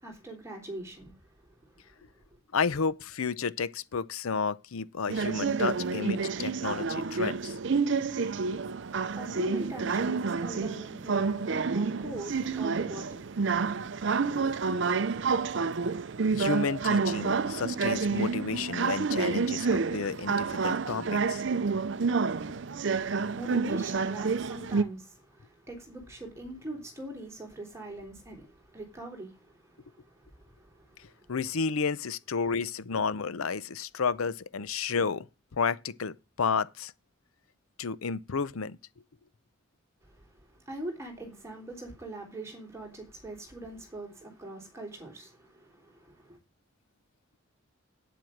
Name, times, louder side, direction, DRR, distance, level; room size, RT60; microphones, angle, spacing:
voice 1, 0.0-1.8 2.2-2.3 8.9-14.0 22.8-31.3 40.0-46.4, right 1 dB, 15° right, 3.6 m, -43 dB
voice 2, 2.5-7.6 8.2-8.3 16.3-21.4 31.3-35.3 35.6-36.9 37.8-38.8, left 5 dB, 85° left, 0.6 m, -31 dB
sound 1, 5.1-24.8, right 4 dB, 55° right, 0.5 m, -29 dB
9.0 x 7.7 x 6.5 m
head